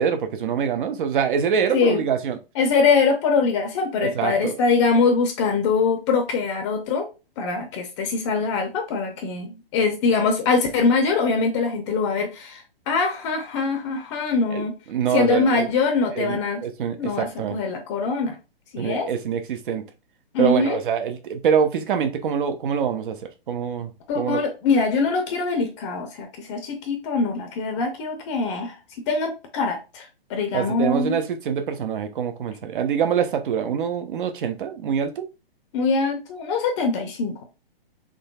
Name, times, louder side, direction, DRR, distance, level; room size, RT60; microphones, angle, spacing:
voice 1, 0.0-2.4 4.0-4.6 14.5-14.6 14.9-15.7 16.1-17.6 18.8-19.9 20.4-23.2 23.5-24.4 30.5-35.3, right 7 dB, 55° right, 0.7 m, -25 dB
voice 2, 2.6-7.1 7.4-14.7 15.1-16.6 17.0-18.4 18.7-19.1 20.3-20.8 24.1-28.8 29.1-31.2 35.7-37.4, left 4 dB, 30° left, 0.6 m, -23 dB
3.8 x 3.2 x 2.3 m
hypercardioid pair, 135°, 30 cm